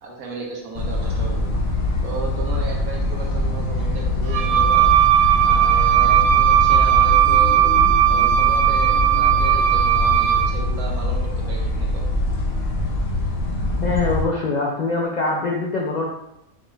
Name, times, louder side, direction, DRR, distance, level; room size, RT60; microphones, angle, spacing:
voice 1, 0.0-1.4 2.0-4.9 5.4-7.7 8.0-12.0, right 3 dB, 80° right, -1 dB, 1.3 m, -34 dB
sound 1, 0.7-14.2, left 2 dB, 60° left, 0.7 m, -23 dB
Wind instrument woodwind instrument, 4.2-10.6, right 11 dB, 60° right, 1.0 m, -17 dB
voice 2, 13.8-16.1, left 3 dB, 75° left, -3 dB, 0.4 m, -23 dB
4.8 x 2.3 x 3.0 m, 0.82 s
omnidirectional pair, 1.5 m